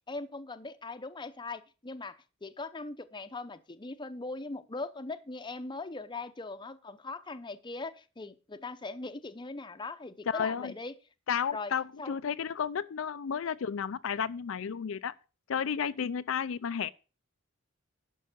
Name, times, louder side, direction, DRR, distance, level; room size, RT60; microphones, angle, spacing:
voice 1, 0.1-11.0 11.5-11.7 12.0-12.2, left 3 dB, 25° left, 0.7 m, -40 dB
voice 2, 10.3-10.7 11.3-15.1 15.5-16.9, left 7 dB, 75° left, 0.4 m, -32 dB
11.0 x 5.5 x 6.7 m
head